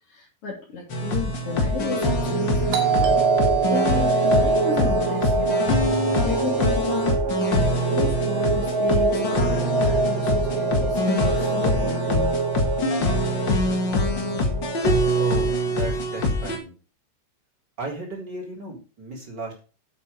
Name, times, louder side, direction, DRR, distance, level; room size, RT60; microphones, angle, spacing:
voice 1, 0.1-5.9 6.2-7.2 7.5-12.4, left 5 dB, 35° left, -5 dB, 3.4 m, -33 dB
sound 1, 0.9-16.6, left 1 dB, 75° left, 1.0 m, -24 dB
sound 2, 1.4-15.8, right 3 dB, 50° right, 5.0 m, -26 dB
Doorbell, 2.7-7.3, right 11 dB, 75° right, 3.9 m, -27 dB
voice 2, 15.2-16.7 17.8-19.6, right 2 dB, 25° right, -1 dB, 3.7 m, -34 dB
9.0 x 8.2 x 5.0 m, 0.34 s
omnidirectional pair, 5.2 m